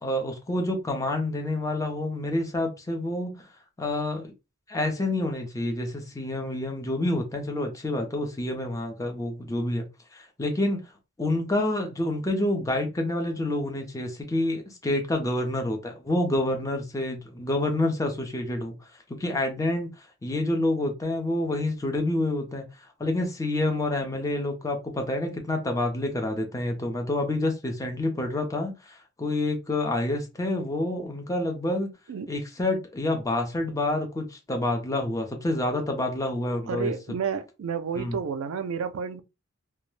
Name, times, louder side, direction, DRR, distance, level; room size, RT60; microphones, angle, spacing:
voice 1, 0.0-3.5 3.8-4.3 4.7-9.8 10.1-10.8 11.2-18.8 19.1-31.9 32.3-36.9 38.0-38.2, left 1 dB, 15° left, 0.5 m, -28 dB
voice 2, 36.7-39.2, right 6 dB, 75° right, 0.4 m, -31 dB
2.2 x 2.1 x 3.1 m
head